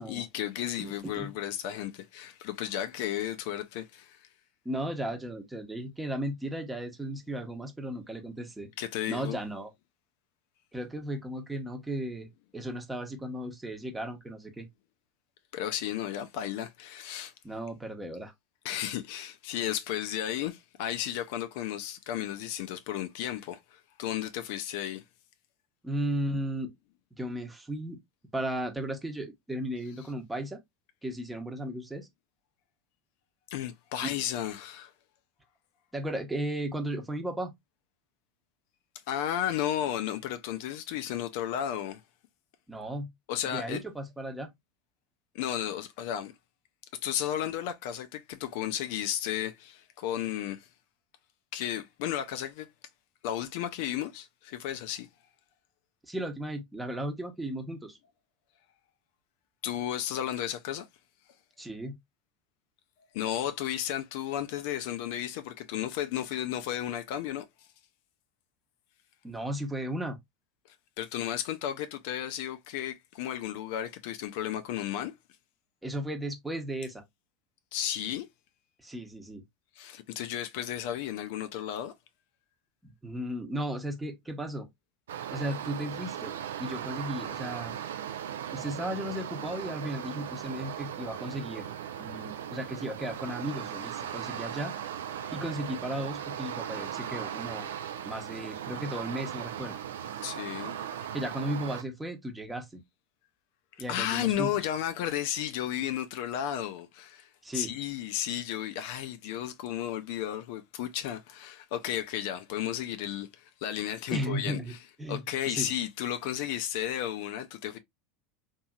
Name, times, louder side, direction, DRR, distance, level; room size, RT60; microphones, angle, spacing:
voice 1, 0.0-4.3 8.8-9.4 15.5-17.3 18.6-25.0 33.5-34.9 39.1-42.0 43.3-43.8 45.3-46.3 47.0-50.7 51.5-52.7 53.2-55.1 59.6-60.9 63.1-67.4 71.0-75.1 77.7-78.3 79.8-81.9 100.2-101.1 103.9-114.8 115.1-117.8, left 11 dB, 65° left, 0.4 m, -33 dB
voice 2, 0.8-1.3 4.6-8.7 9.1-9.7 10.7-14.7 17.4-18.3 25.8-26.7 27.2-28.0 28.3-30.6 31.0-32.1 34.0-34.1 35.9-37.5 42.7-43.1 43.4-44.5 56.1-58.0 61.6-62.0 69.2-70.2 75.8-77.0 78.8-79.4 82.8-84.7 85.3-86.3 86.6-87.8 88.5-91.7 92.0-94.7 95.3-97.7 98.0-99.8 101.1-102.8 103.8-104.5 107.4-107.7 114.1-114.7 115.0-115.7, right 1 dB, 10° right, 0.9 m, -35 dB
sound 1, 85.1-101.8, right 9 dB, 75° right, 0.4 m, -38 dB
2.8 x 2.7 x 2.3 m
hypercardioid pair, 85°, 0 cm